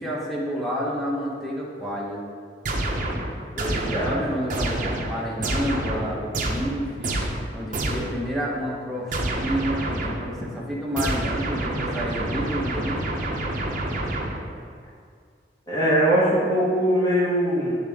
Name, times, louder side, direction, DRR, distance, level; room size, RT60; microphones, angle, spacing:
voice 1, 0.0-2.2 4.0-7.1 7.5-13.0, equal, ahead, -5 dB, 1.1 m, -29 dB
sound 1, 2.6-8.3 9.1-10.4 11.0-14.6, right 1 dB, 45° right, 0.7 m, -28 dB
voice 2, 3.5-4.1 15.7-17.7, equal, 20° left, -7 dB, 1.3 m, -21 dB
8.9 x 4.0 x 3.6 m, 2.1 s
head